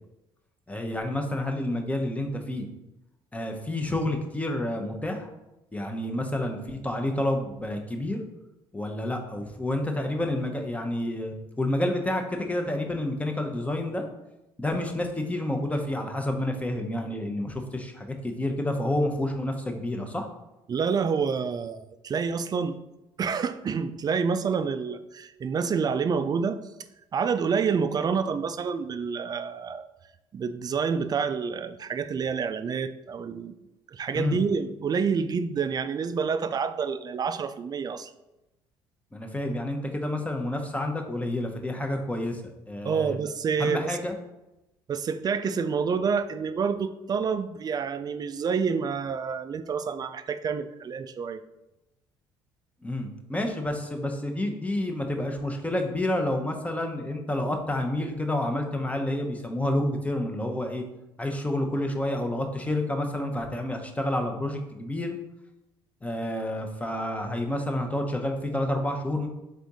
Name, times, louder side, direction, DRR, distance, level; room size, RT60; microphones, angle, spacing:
voice 1, 0.7-2.7 3.3-5.3 5.7-8.2 8.7-14.0 14.6-20.3 34.1-34.4 39.1-42.4 42.7-43.2 43.6-44.1 52.8-60.8 61.2-65.2 66.0-69.3, left 1 dB, 10° left, 3 dB, 0.8 m, -29 dB
voice 2, 20.7-22.8 23.2-26.6 27.1-29.8 30.3-33.5 33.9-38.1 42.8-44.0 44.9-51.4, right 6 dB, 35° right, 12 dB, 0.4 m, -28 dB
3.7 x 3.4 x 4.1 m, 0.96 s
supercardioid pair, 70°, 11 cm